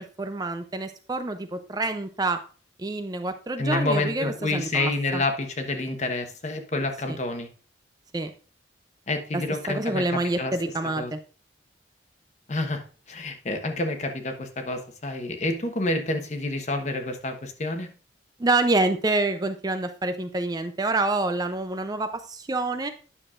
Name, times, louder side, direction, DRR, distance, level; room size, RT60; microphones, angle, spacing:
voice 1, 0.0-2.4 2.8-5.2 7.1-7.2 8.1-8.3 9.3-9.4 9.7-11.2 18.4-22.9, right 2 dB, 20° right, 9 dB, 0.4 m, -27 dB
voice 2, 3.6-7.5 9.1-10.6 10.8-11.1 12.5-12.8 13.1-17.9, left 2 dB, 40° left, 6 dB, 1.0 m, -28 dB
9.8 x 6.6 x 2.4 m, 0.38 s
head